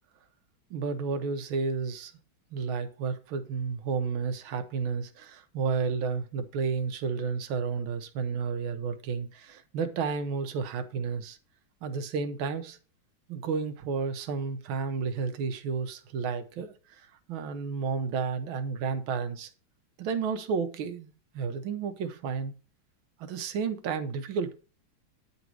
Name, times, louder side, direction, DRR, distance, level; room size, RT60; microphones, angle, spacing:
voice 1, 0.7-2.1 2.5-11.4 11.8-12.8 13.3-19.5 20.0-22.5 23.2-24.5, right 5 dB, 80° right, 1.7 m, -32 dB
9.6 x 4.1 x 4.5 m
omnidirectional pair, 2.2 m